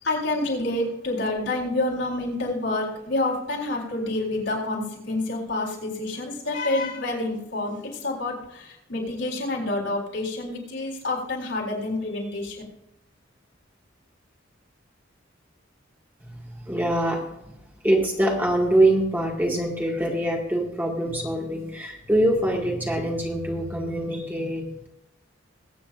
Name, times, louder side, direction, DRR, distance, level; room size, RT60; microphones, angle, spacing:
voice 1, 0.0-12.6, left 2 dB, 75° left, -3 dB, 4.1 m, -28 dB
voice 2, 16.2-17.6 17.8-24.9, right 1 dB, 10° right, -1 dB, 2.0 m, -24 dB
22.0 x 8.8 x 2.6 m, 0.85 s
head